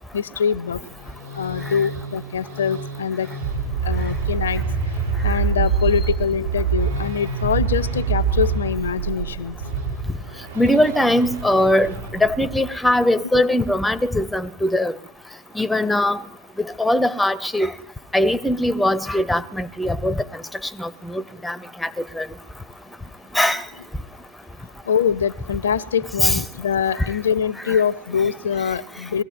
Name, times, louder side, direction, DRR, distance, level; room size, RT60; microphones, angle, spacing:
voice 1, 0.1-0.8 1.3-3.3 3.8-4.6 5.2-9.5 13.3-13.4 24.8-29.2, left 7 dB, 65° left, 0.6 m, -23 dB
sound 1, 0.9-12.7, right 5 dB, 75° right, 4.7 m, -26 dB
voice 2, 10.6-14.9 15.6-16.2 16.8-17.7 18.1-20.1 20.8-21.6 21.8-21.9 22.2-22.3 23.3-23.6 26.2-26.4, left 1 dB, 5° left, 0.7 m, -20 dB
20.5 x 14.5 x 9.1 m
figure-of-eight pair, 90°, 0 cm